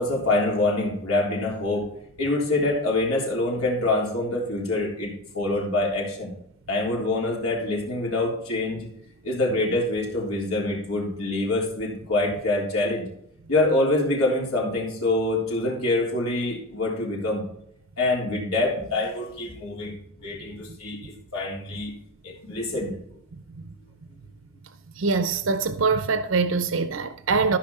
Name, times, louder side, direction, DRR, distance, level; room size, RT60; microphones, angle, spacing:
voice 1, 0.0-1.9 2.2-6.3 6.7-8.9 9.2-13.1 13.5-17.4 18.0-20.0 20.2-21.9 22.2-23.0, left 2 dB, 80° left, 3.6 m, -25 dB
voice 2, 25.0-27.6, right 4 dB, 65° right, 0.6 m, -23 dB
14.0 x 5.9 x 4.2 m
head